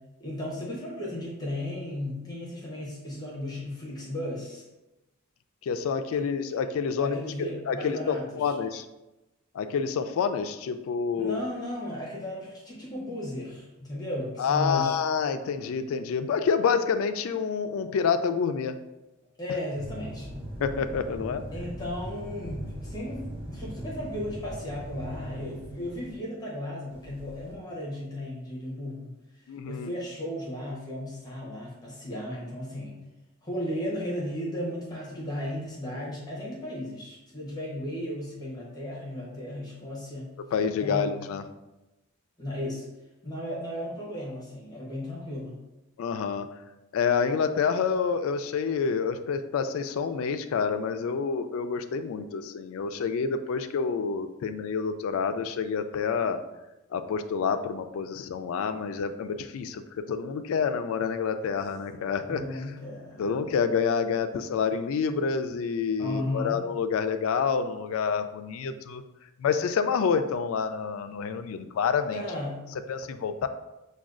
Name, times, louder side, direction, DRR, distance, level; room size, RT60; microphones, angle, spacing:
voice 1, 0.2-4.6 6.2-6.3 7.0-8.5 11.2-15.0 19.4-20.3 21.5-29.1 29.7-33.0 33.4-40.3 40.8-41.1 42.4-42.9 43.2-45.6 62.3-63.3 66.0-66.6 72.1-72.6, left 1 dB, 20° left, -5 dB, 0.8 m, -35 dB
voice 2, 5.6-8.9 9.5-11.4 14.4-18.8 20.6-21.4 29.5-29.9 40.5-41.4 46.0-46.5 46.9-56.4 56.9-62.4 63.2-69.0 69.4-72.2 72.9-73.5, left 6 dB, 65° left, 9 dB, 0.3 m, -28 dB
sound 1, 19.7-26.2 26.9-27.6, right 1 dB, 25° right, 0.6 m, -40 dB
5.9 x 2.3 x 2.4 m, 0.99 s
head